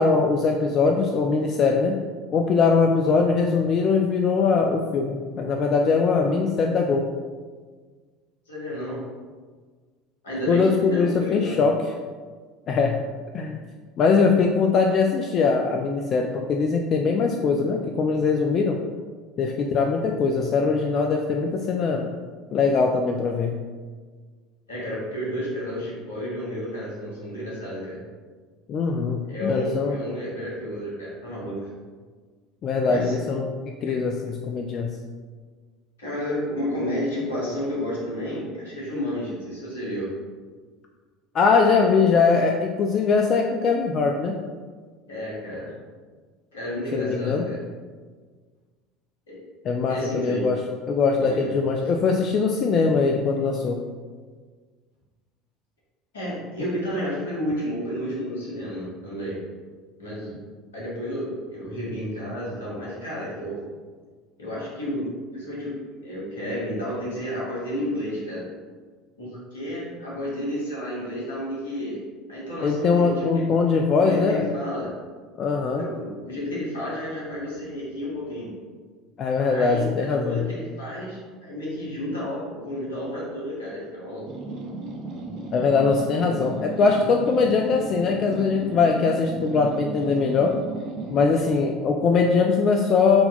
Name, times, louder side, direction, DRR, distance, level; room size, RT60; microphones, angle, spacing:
voice 1, 0.0-2.0 2.3-7.1 10.5-11.8 12.7-13.0 13.3-13.6 14.0-18.8 19.4-22.1 22.5-23.5 28.7-30.0 32.6-33.5 33.8-34.9 41.3-44.3 46.9-47.5 49.6-50.6 50.9-53.8 72.6-74.4 75.4-75.8 79.2-80.4 85.5-90.5 91.1-93.2, left 4 dB, 40° left, 2 dB, 0.3 m, -21 dB
voice 2, 8.5-9.0 10.2-11.7 24.7-28.0 29.3-31.7 32.9-33.3 33.9-34.0 36.0-40.1 45.1-45.7 46.5-47.6 49.3-49.4 49.9-50.5 51.1-51.5 51.8-51.9 56.1-59.4 60.0-60.3 60.7-63.7 64.4-68.4 69.2-72.0 72.3-73.7 74.0-74.9 75.8-78.5 79.4-84.3, equal, 75° left, -6 dB, 1.5 m, -31 dB
sound 1, 84.3-91.3, right 3 dB, 45° right, 0.6 m, -35 dB
3.7 x 2.8 x 3.7 m, 1.5 s
figure-of-eight pair, 70°, 0 cm